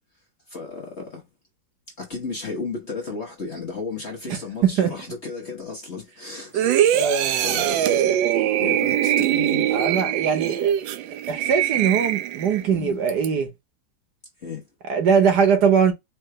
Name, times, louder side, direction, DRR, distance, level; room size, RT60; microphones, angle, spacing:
voice 1, 0.5-1.2 2.0-8.2 8.6-9.8 12.7-13.0 14.4-14.6, left 4 dB, 40° left, 1.1 m, -34 dB
voice 2, 4.3-4.9 6.9-7.7 9.7-10.7 11.3-13.5 14.8-15.9, right 6 dB, 60° right, 1.4 m, -21 dB
sound 1, 6.5-12.7 13.1-13.3, right 11 dB, 75° right, 1.3 m, -22 dB
4.8 x 3.2 x 3.2 m
omnidirectional pair, 2.2 m